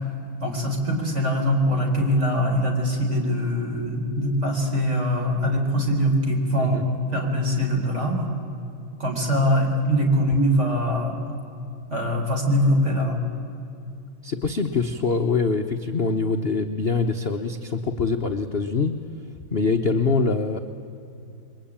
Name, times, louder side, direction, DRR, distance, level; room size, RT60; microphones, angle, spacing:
voice 1, 0.4-8.3 9.0-11.2 11.9-13.2, equal, 30° right, 1 dB, 4.3 m, -22 dB
voice 2, 14.2-18.9 19.5-20.6, left 4 dB, 45° left, 5 dB, 0.8 m, -24 dB
28.5 x 22.5 x 8.8 m, 2.7 s
omnidirectional pair, 2.3 m